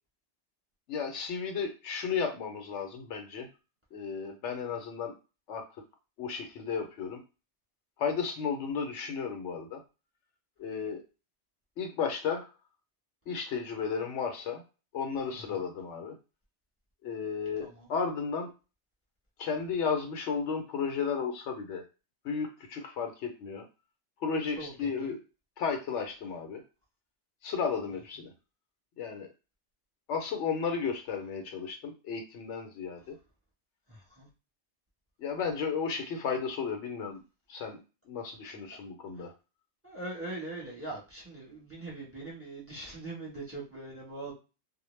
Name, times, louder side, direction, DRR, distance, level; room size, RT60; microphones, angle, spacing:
voice 1, 0.9-3.5 3.9-5.1 5.5-5.7 6.2-7.2 8.0-9.8 10.6-11.0 11.8-12.5 13.3-14.6 14.9-16.1 17.0-18.5 19.4-21.8 22.2-23.6 24.2-25.2 25.6-26.6 27.4-28.3 29.0-29.3 30.1-33.2 35.2-37.2 37.5-37.8 38.1-39.3, left 6 dB, 85° left, 5 dB, 0.9 m, -33 dB
voice 2, 15.3-15.6 17.6-17.9 24.6-25.1 33.9-34.3 38.4-38.5 39.2-39.3 39.8-44.3, right 2 dB, 15° right, -5 dB, 0.9 m, -42 dB
2.2 x 2.1 x 3.1 m, 0.30 s
omnidirectional pair, 1.2 m